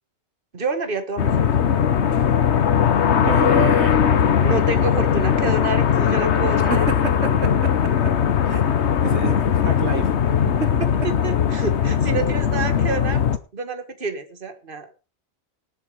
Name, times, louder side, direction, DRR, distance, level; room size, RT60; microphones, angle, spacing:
voice 1, 0.5-1.7 4.4-6.9 11.2-13.2 13.5-14.9, right 3 dB, 50° right, 9 dB, 1.8 m, -28 dB
sound 1, 1.2-13.4, left 8 dB, 70° left, 1.3 m, -19 dB
voice 2, 3.2-4.0 6.6-7.7 8.5-8.7 9.0-10.1 10.8-10.9, right 4 dB, 70° right, 8 dB, 1.7 m, -28 dB
18.0 x 7.4 x 5.0 m, 0.32 s
omnidirectional pair, 1.2 m